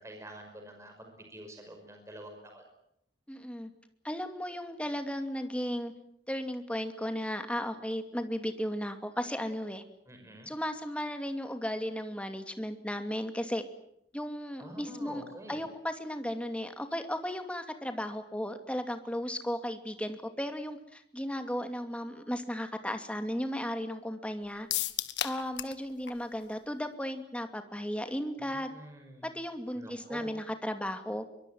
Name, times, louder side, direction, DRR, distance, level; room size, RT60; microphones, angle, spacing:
voice 1, 0.0-2.6 10.1-10.5 14.6-15.6 28.4-29.3 29.8-30.4, right 1 dB, 15° right, 3 dB, 5.5 m, -47 dB
voice 2, 3.3-3.7 4.0-5.9 6.3-9.8 10.5-13.6 14.1-24.7 25.2-28.7 29.2-31.2, equal, 5° left, 7 dB, 2.6 m, -35 dB
sound 1, 24.7-25.8 26.1-26.2 26.5-26.6, left 12 dB, 85° left, 1.6 m, -33 dB
23.5 x 23.5 x 9.3 m, 0.75 s
head